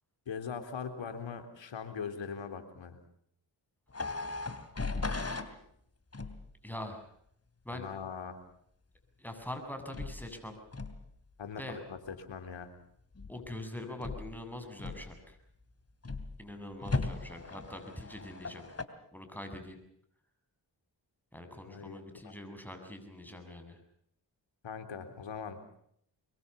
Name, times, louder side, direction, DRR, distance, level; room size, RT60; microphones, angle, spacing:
voice 1, 0.3-3.0 7.7-8.4 11.4-12.7 21.7-22.4 24.6-25.6, left 6 dB, 80° left, 7 dB, 3.7 m, -41 dB
sound 1, 3.9-5.5 6.1-6.5 9.9-10.3 10.7-11.1 13.2-13.5 14.0-14.4 14.8-15.3 16.0-16.4 16.8-18.9, left 3 dB, 35° left, 2.9 m, -37 dB
voice 2, 6.6-7.1 7.6-7.9 9.2-10.6 11.6-11.8 13.3-15.4 16.4-18.6 19.1-19.8 21.3-23.8, left 1 dB, 5° left, 6 dB, 7.6 m, -43 dB
25.0 x 22.0 x 7.0 m, 0.69 s
cardioid pair, 60°, 45 cm